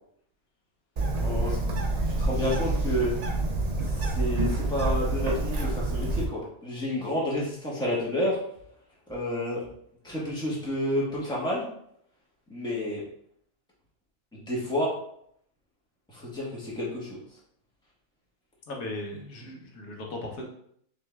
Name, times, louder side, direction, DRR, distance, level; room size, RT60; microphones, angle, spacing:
Bird, 1.0-6.2, right 2 dB, 50° right, 0.4 m, -27 dB
voice 1, 1.2-1.7 2.2-3.1 3.9-8.4 9.1-9.6 10.0-11.6 12.5-13.0 14.5-14.9 16.1-17.2, left 1 dB, 5° left, -5 dB, 1.1 m, -30 dB
voice 2, 18.7-20.5, left 2 dB, 85° left, 0 dB, 1.3 m, -37 dB
6.0 x 3.1 x 2.3 m, 0.69 s
omnidirectional pair, 1.4 m